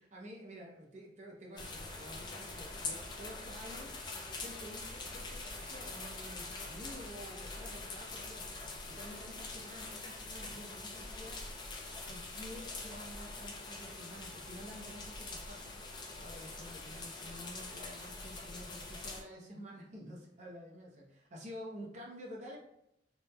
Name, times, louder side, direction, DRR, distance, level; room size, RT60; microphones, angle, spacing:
voice 1, 0.0-3.9 4.4-11.5 12.1-22.6, equal, 40° right, -1 dB, 0.5 m, -50 dB
sound 1, 1.6-19.2, left 3 dB, 25° left, 0.3 m, -44 dB
2.8 x 2.0 x 2.2 m, 0.81 s
head